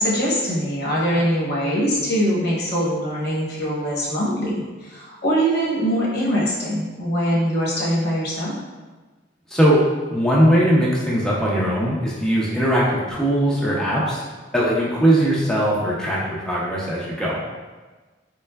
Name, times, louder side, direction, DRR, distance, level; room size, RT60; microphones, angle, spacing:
voice 1, 0.0-8.5, equal, 60° left, -5 dB, 1.0 m, -22 dB
voice 2, 9.5-9.8 10.1-14.2 14.5-17.4, equal, 5° left, -6 dB, 0.4 m, -20 dB
3.6 x 3.2 x 2.2 m, 1.3 s
head